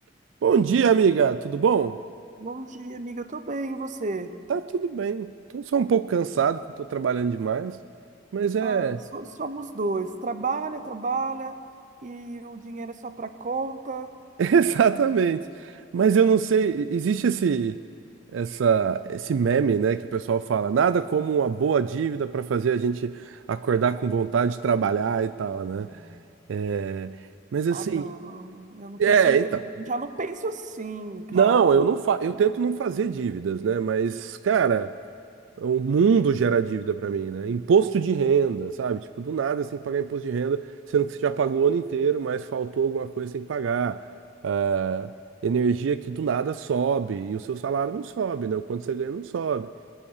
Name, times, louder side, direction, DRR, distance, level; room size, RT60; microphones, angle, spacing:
voice 1, 0.4-2.0 4.5-7.8 8.3-9.0 14.4-17.8 18.3-25.9 26.5-27.1 27.5-28.1 29.0-29.6 31.3-34.9 35.6-40.6 40.9-44.0 44.4-45.1 45.4-49.7, right 6 dB, 85° right, 13 dB, 0.4 m, -24 dB
voice 2, 2.4-4.3 8.6-11.6 12.0-14.1 25.7-26.3 27.7-29.6 29.9-31.8 32.3-32.4, right 3 dB, 40° right, 10 dB, 0.8 m, -32 dB
21.0 x 8.7 x 6.6 m, 2.7 s
head